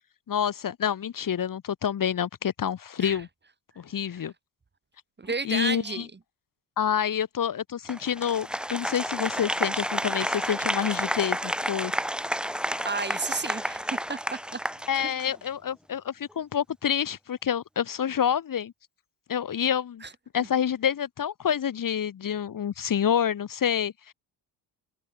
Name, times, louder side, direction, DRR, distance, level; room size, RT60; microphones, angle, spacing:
voice 1, 0.3-3.3 3.8-4.3 5.4-6.1 6.8-11.9 14.9-18.7 19.3-20.0 20.3-24.1, left 8 dB, 45° left, 1.6 m, -28 dB
voice 2, 5.2-6.1 12.8-14.6 15.0-15.1 20.0-20.1, right 4 dB, 25° right, 2.1 m, -32 dB
Applause, 7.9-15.5, equal, ahead, 3.9 m, -30 dB
cardioid pair, 95°, 44 cm